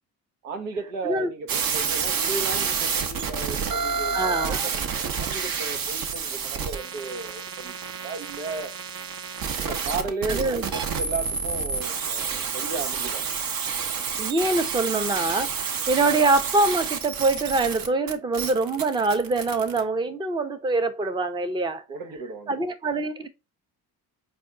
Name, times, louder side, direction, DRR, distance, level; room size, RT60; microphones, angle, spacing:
voice 1, 0.4-8.8 9.6-13.2 21.9-22.6, right 3 dB, 85° right, 0.8 m, -34 dB
sound 1, 1.5-19.8, right 6 dB, 50° right, 0.7 m, -29 dB
voice 2, 4.1-4.7 10.3-10.6 14.2-21.8 22.5-23.3, right 2 dB, 10° right, 0.5 m, -24 dB
4.2 x 2.4 x 3.6 m
hypercardioid pair, 50°, 46 cm